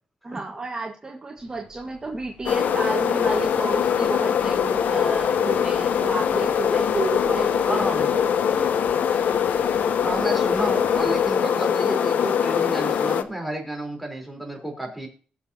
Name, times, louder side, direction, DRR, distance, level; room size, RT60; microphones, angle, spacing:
voice 1, 0.2-7.9, right 3 dB, 25° right, 0 dB, 1.8 m, -31 dB
sound 1, 1.4-11.4, right 4 dB, 50° right, 4.9 m, -46 dB
sound 2, 2.5-13.2, left 8 dB, 80° left, 0.9 m, -22 dB
voice 2, 7.7-8.3 10.0-15.1, right 1 dB, ahead, 2 dB, 4.0 m, -31 dB
20.5 x 7.1 x 2.9 m, 0.41 s
cardioid pair, 100°, 3 cm